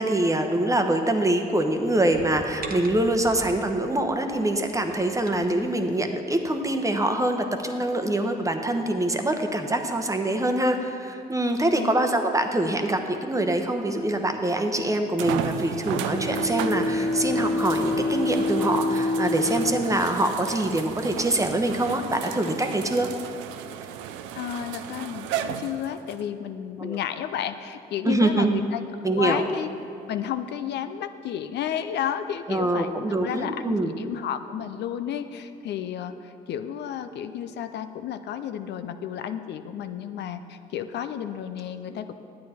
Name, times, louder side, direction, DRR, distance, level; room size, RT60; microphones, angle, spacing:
voice 1, 0.0-23.1 26.8-27.0 28.0-28.6 29.0-29.4 32.5-33.9, right 1 dB, 15° right, 5 dB, 1.0 m, -24 dB
sound 1, 1.3-3.8 4.4-5.6, right 3 dB, 50° right, 1.1 m, -42 dB
sound 2, 14.1-14.2 15.2-26.2 26.9-27.0 30.5-30.6, right 9 dB, 80° right, 0.5 m, -35 dB
Bowed string instrument, 15.9-21.1, left 2 dB, 40° left, 1.3 m, -27 dB
voice 2, 24.3-29.7 30.1-32.9 33.2-42.1, left 9 dB, 60° left, 9 dB, 0.5 m, -32 dB
10.0 x 8.4 x 4.3 m, 2.5 s
hypercardioid pair, 55°, 20 cm